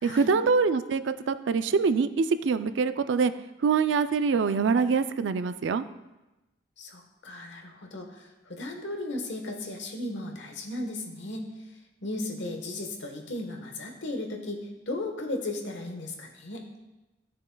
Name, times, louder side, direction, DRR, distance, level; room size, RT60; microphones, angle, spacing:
voice 1, 0.0-3.3 3.6-5.8, right 5 dB, 75° right, 12 dB, 0.4 m, -24 dB
voice 2, 6.8-11.5 12.0-16.7, left 2 dB, 75° left, 3 dB, 1.2 m, -36 dB
13.0 x 6.5 x 2.2 m, 1.0 s
head